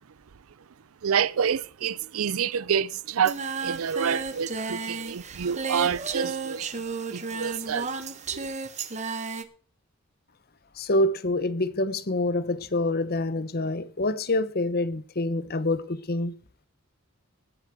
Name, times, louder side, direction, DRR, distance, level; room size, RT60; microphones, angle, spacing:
voice 1, 1.0-8.0 8.3-8.5, right 7 dB, 80° right, 0.5 m, -28 dB
Singing, 3.2-9.4, right 4 dB, 35° right, 1.2 m, -33 dB
voice 2, 10.8-16.4, left 2 dB, 45° left, 1.0 m, -26 dB
19.0 x 7.4 x 4.6 m
head